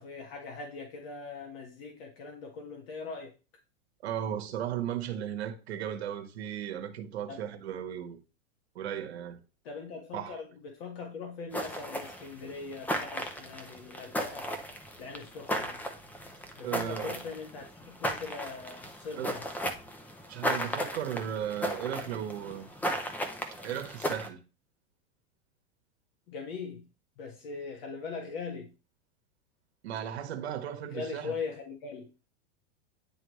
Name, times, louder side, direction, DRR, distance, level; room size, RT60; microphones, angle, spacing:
voice 1, 0.0-3.3 7.3-7.5 9.6-14.5 15.0-15.8 16.6-19.4 26.3-26.8 27.2-28.7 30.8-32.1, left 4 dB, 65° left, 1.7 m, -41 dB
voice 2, 4.0-8.2 8.7-9.4 10.1-10.4 16.6-17.2 19.2-19.4 20.3-22.7 23.6-24.4 29.8-31.3, right 10 dB, 90° right, 1.2 m, -36 dB
sound 1, 11.5-24.3, equal, 5° left, 0.6 m, -36 dB
9.9 x 3.4 x 3.1 m
supercardioid pair, 145°, 31 cm